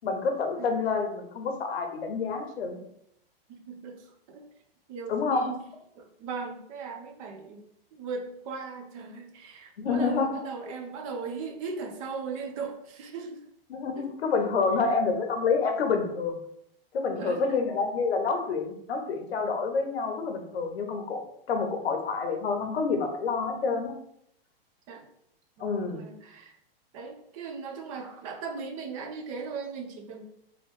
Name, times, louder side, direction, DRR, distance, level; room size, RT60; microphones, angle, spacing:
voice 1, 0.0-2.8 5.1-5.5 9.8-10.4 13.7-16.4 16.9-21.2 21.5-23.9 25.6-26.0, left 4 dB, 90° left, 5 dB, 0.8 m, -28 dB
voice 2, 3.5-4.5 4.9-5.6 6.0-7.6 7.9-13.4 14.0-14.1 17.2-17.6 24.9-25.1 25.6-26.6 26.9-30.3, right 5 dB, 35° right, 5 dB, 0.5 m, -38 dB
3.0 x 3.0 x 3.1 m, 0.73 s
hypercardioid pair, 145°, 30 cm